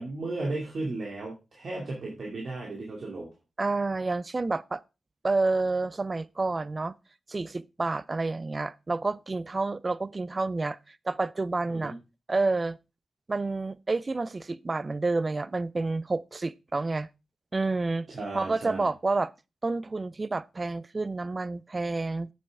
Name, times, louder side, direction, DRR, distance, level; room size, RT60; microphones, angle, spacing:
voice 1, 0.0-3.3 11.7-12.0 18.1-18.9, right 2 dB, 65° right, 2.4 m, -35 dB
voice 2, 3.6-4.8 5.2-7.0 7.3-11.9 12.3-12.8 13.3-17.1 17.5-18.1 18.3-19.3 19.6-22.3, right 3 dB, 40° right, 0.4 m, -29 dB
8.5 x 7.7 x 3.5 m
supercardioid pair, 45°, 0 cm